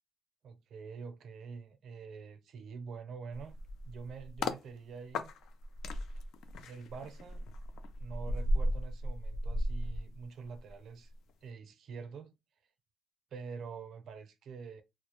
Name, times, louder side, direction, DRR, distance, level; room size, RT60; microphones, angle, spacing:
voice 1, 0.4-3.6 3.8-5.3 6.6-7.4 8.0-11.1 11.4-12.3 13.3-14.8, right 5 dB, 70° right, 0.5 m, -46 dB
sound 1, 3.3-4.6 5.1-10.7 11.0-11.3, equal, 80° left, 0.4 m, -35 dB
2.3 x 2.0 x 2.9 m
cardioid pair, 90°, 0 cm